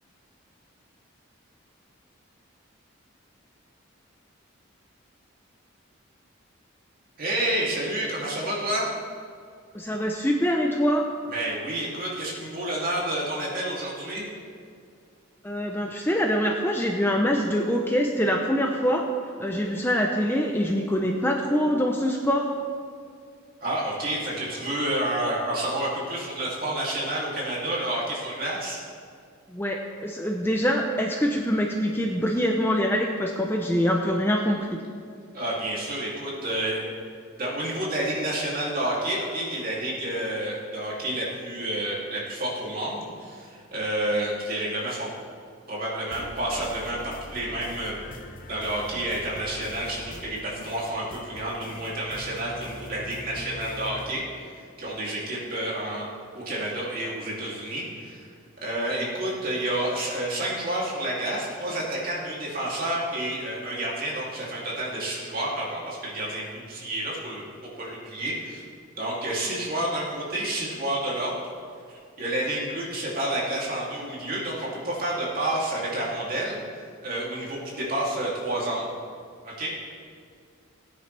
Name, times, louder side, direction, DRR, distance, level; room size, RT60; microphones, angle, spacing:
voice 1, 7.2-8.9 11.3-14.2 23.6-28.8 35.3-36.9 37.4-45.1 45.7-48.0 48.5-54.5 54.8-56.0 56.3-58.3 58.6-67.4 67.8-68.6 68.9-71.4 71.9-78.9 79.4-79.8, right 1 dB, 45° right, -5 dB, 2.8 m, -29 dB
voice 2, 9.7-11.0 15.4-19.0 19.4-22.5 29.5-34.8, equal, 10° left, 1 dB, 0.6 m, -24 dB
sound 1, 46.1-54.1, left 1 dB, 40° left, 1.0 m, -43 dB
18.0 x 9.6 x 3.4 m, 2.3 s
head